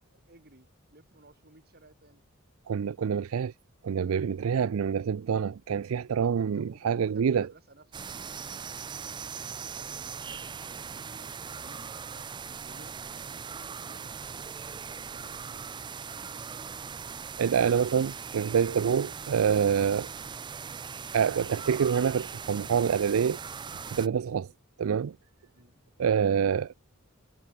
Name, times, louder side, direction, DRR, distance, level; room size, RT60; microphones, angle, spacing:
voice 1, 0.0-2.2 6.3-8.2 8.5-16.2 24.3-24.6 25.6-25.7, right 2 dB, 50° right, 7.2 m, -57 dB
voice 2, 2.7-3.5 3.8-7.5 17.4-20.1 21.1-23.4 23.9-24.5 24.8-25.1 26.0-26.7, right 7 dB, 90° right, 0.4 m, -26 dB
sound 1, 7.9-24.1, right 6 dB, 20° right, 0.4 m, -40 dB
head